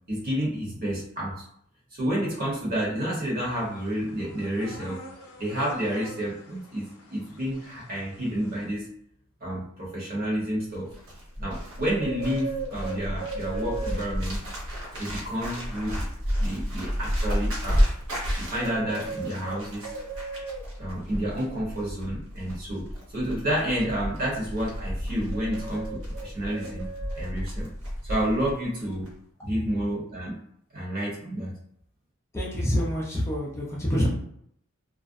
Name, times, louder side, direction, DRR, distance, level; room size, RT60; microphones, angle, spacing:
voice 1, 0.1-1.3 1.9-5.0 5.4-8.9 9.4-10.9 11.4-14.4 15.0-16.0 16.4-17.8 18.4-19.9 20.8-22.9 23.1-26.9 27.1-27.7 28.0-29.1 29.4-30.4 30.7-31.5, equal, 45° right, -5 dB, 1.0 m, -30 dB
sound 1, 3.5-8.7, left 1 dB, 80° left, 0.5 m, -47 dB
Bird, 10.7-28.6 28.8-29.1, equal, 65° right, 0.7 m, -31 dB
voice 2, 32.3-34.1, equal, 15° left, -5 dB, 0.5 m, -27 dB
2.4 x 2.1 x 2.5 m, 0.68 s
head